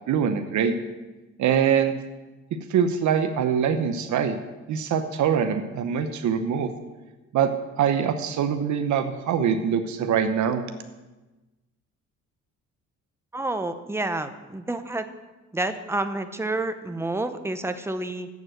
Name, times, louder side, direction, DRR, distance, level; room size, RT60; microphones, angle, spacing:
voice 1, 0.1-0.8 1.4-1.9 2.5-4.4 4.7-6.7 7.3-10.6, right 7 dB, 70° right, 8 dB, 0.8 m, -23 dB
voice 2, 13.3-15.1 15.5-18.3, right 2 dB, 10° right, 8 dB, 0.8 m, -29 dB
8.0 x 7.2 x 7.8 m, 1.1 s
cardioid pair, 90°, 30 cm